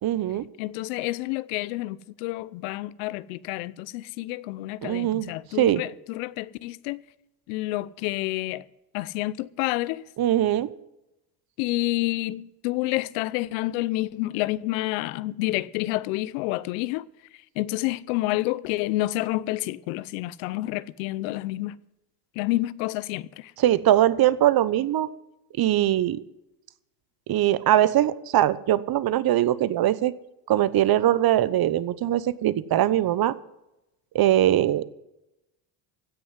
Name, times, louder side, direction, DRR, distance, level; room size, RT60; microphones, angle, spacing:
voice 1, 0.0-0.4 4.8-5.8 10.2-10.7 23.6-25.1 25.6-26.2 27.3-30.1 30.5-33.4 34.1-34.8, right 12 dB, 45° right, 1.0 m, -21 dB
voice 2, 0.6-7.0 7.5-8.6 8.9-10.0 11.6-17.1 17.6-21.7 22.4-23.5, left 18 dB, 80° left, 0.8 m, -29 dB
16.5 x 6.3 x 9.6 m
supercardioid pair, 85°, 49 cm